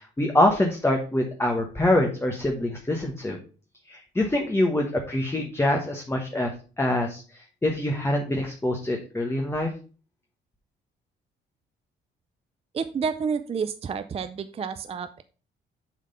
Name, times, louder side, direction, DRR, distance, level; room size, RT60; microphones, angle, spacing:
voice 1, 0.0-3.4 3.9-9.7, left 1 dB, 10° left, 1 dB, 1.2 m, -25 dB
voice 2, 12.7-15.2, right 6 dB, 30° right, 10 dB, 0.5 m, -30 dB
7.4 x 3.6 x 5.5 m, 0.38 s
cardioid pair, 90°, 20 cm